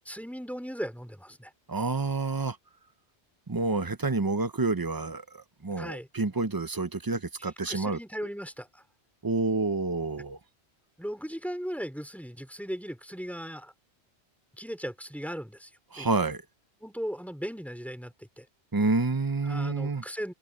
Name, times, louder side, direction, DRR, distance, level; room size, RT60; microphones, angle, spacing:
voice 1, 0.0-1.5 5.8-6.1 7.4-8.8 11.0-13.7 14.6-15.7 16.0-16.1 16.8-18.4 19.4-20.3, equal, ahead, 3.3 m, -37 dB
voice 2, 1.7-2.6 3.5-8.0 9.2-10.4 15.9-16.4 18.7-20.0, right 3 dB, 20° right, 0.8 m, -28 dB
open air
omnidirectional pair, 1.1 m